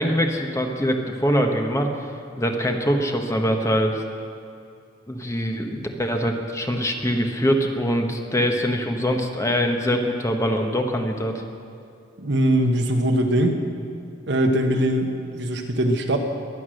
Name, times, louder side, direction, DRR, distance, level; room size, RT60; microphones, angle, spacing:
voice 1, 0.0-1.9 2.4-4.0 5.1-11.4, equal, 15° left, 3 dB, 1.2 m, -23 dB
voice 2, 12.2-13.5 14.3-16.2, right 1 dB, 60° right, 4 dB, 1.4 m, -21 dB
22.5 x 9.6 x 6.5 m, 2.4 s
head